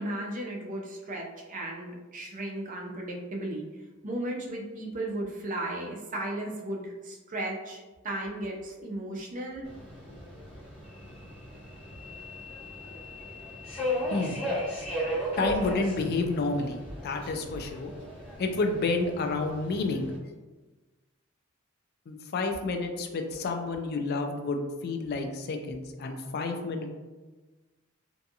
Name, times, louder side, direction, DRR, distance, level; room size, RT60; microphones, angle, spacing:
voice 1, 0.0-3.6 4.0-9.7, right 1 dB, 40° right, -1 dB, 0.5 m, -35 dB
Subway metro underground, 9.6-20.2, equal, 30° left, 0.9 m, -36 dB
voice 2, 15.4-16.8 17.0-17.9 18.4-20.1 22.1-26.9, left 3 dB, 50° left, 5 dB, 0.3 m, -30 dB
2.6 x 2.3 x 2.7 m, 1.2 s
head